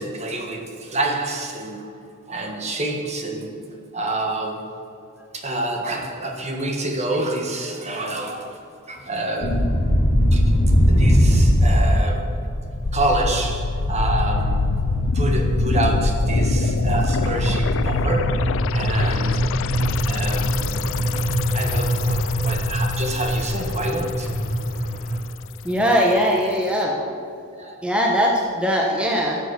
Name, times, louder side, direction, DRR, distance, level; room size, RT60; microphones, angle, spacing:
voice 1, 0.0-1.9 2.3-3.5 3.9-4.8 5.3-8.6 8.9-9.7 10.3-10.5 10.9-12.5 12.9-14.8 15.1-19.4 20.0-20.8 21.5-24.4 27.6-27.8 28.9-29.2, right 2 dB, 30° right, 2 dB, 1.5 m, -27 dB
sound 1, 9.4-25.2, equal, 35° left, 1.2 m, -21 dB
sound 2, 12.8-25.4 25.7-25.8, left 6 dB, 65° left, 0.4 m, -28 dB
voice 2, 25.6-27.0 27.8-29.4, equal, 5° right, -1 dB, 1.1 m, -20 dB
12.5 x 7.2 x 6.9 m, 2.6 s
head